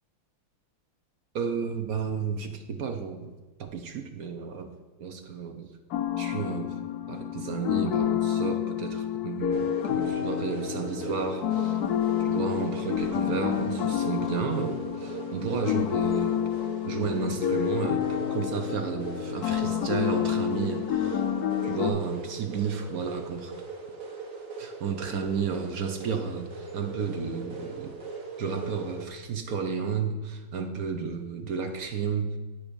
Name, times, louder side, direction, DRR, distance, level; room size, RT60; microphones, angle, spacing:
voice 1, 1.3-3.3 3.6-4.7 5.0-5.7 6.2-6.7 7.1-11.8 12.2-16.5 16.8-21.2 21.6-23.5 24.6-28.0 28.4-32.4, right 6 dB, 60° right, 7 dB, 1.0 m, -32 dB
sound 1, 5.9-21.9, left 10 dB, 65° left, 1.0 m, -29 dB
sound 2, 9.5-29.1, right 4 dB, 45° right, 1.7 m, -40 dB
9.9 x 6.3 x 6.2 m, 1.2 s
omnidirectional pair, 2.1 m